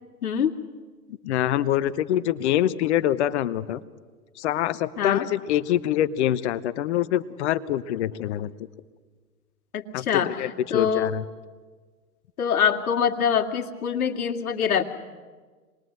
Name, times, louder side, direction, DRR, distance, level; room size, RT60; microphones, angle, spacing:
voice 1, 0.2-0.5 5.0-5.3 9.7-11.1 12.4-14.8, left 7 dB, 70° left, 3 dB, 2.3 m, -24 dB
voice 2, 1.2-3.8 4.4-8.5 9.9-11.2, left 12 dB, 45° left, 13 dB, 1.0 m, -25 dB
27.0 x 21.0 x 8.0 m, 1.4 s
hypercardioid pair, 120°, 45 cm